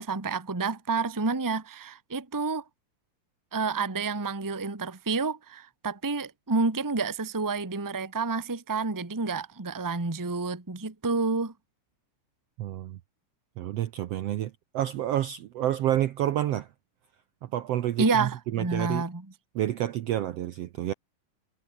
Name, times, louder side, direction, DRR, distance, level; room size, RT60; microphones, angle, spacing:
voice 1, 0.0-2.6 3.5-11.5 18.0-19.2, right 4 dB, 10° right, 0.9 m, -29 dB
voice 2, 12.6-13.0 13.6-16.7 17.4-19.0 19.5-20.9, right 12 dB, 70° right, 1.5 m, -29 dB
omnidirectional pair, 3.7 m